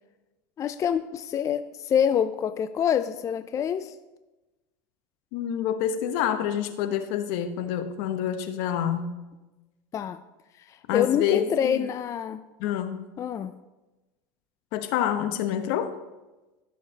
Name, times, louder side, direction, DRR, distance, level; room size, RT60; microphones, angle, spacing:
voice 1, 0.6-4.0 9.9-10.2 10.7-12.4 13.2-13.5, left 8 dB, 30° left, 11 dB, 0.4 m, -26 dB
voice 2, 5.3-9.1 10.9-11.8 12.6-13.1 14.7-15.9, left 10 dB, 65° left, 9 dB, 1.0 m, -27 dB
16.0 x 6.5 x 2.8 m, 1.1 s
supercardioid pair, 110°, 10 cm